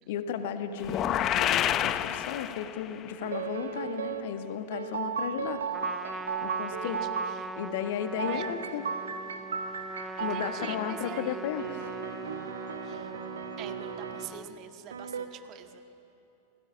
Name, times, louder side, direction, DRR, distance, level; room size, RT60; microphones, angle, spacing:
voice 1, 0.1-5.6 6.4-7.0 7.6-8.8 10.2-11.8, left 9 dB, 55° left, 9 dB, 1.7 m, -34 dB
sound 1, 0.8-3.0, left 11 dB, 30° left, 0.8 m, -28 dB
sound 2, 3.2-4.2 4.7-7.4 8.2-10.9 11.6-14.3 14.9-15.3, right 6 dB, 70° right, 1.4 m, -35 dB
Trumpet, 5.7-14.5, right 1 dB, 5° right, 0.7 m, -42 dB
voice 2, 6.8-7.5 8.2-8.4 10.2-11.5 12.8-13.1 13.6-15.8, right 11 dB, 35° right, 7 dB, 1.7 m, -44 dB
28.5 x 19.5 x 8.9 m, 2.8 s
figure-of-eight pair, 90°, 0 cm